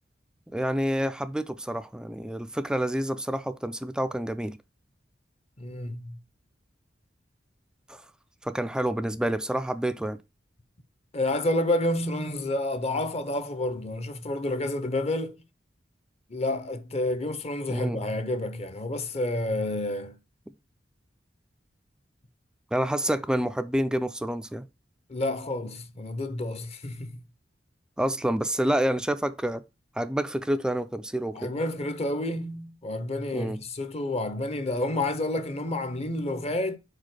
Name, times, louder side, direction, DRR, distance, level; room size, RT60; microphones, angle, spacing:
voice 1, 0.5-4.6 7.9-8.0 8.4-10.2 17.7-18.0 22.7-24.7 28.0-29.6 30.0-31.5 33.3-33.6, right 1 dB, 5° right, 0.3 m, -28 dB
voice 2, 5.6-6.2 11.1-15.4 16.3-20.1 25.1-27.2 31.3-36.8, left 1 dB, 35° left, 0.7 m, -29 dB
4.9 x 4.5 x 5.9 m
head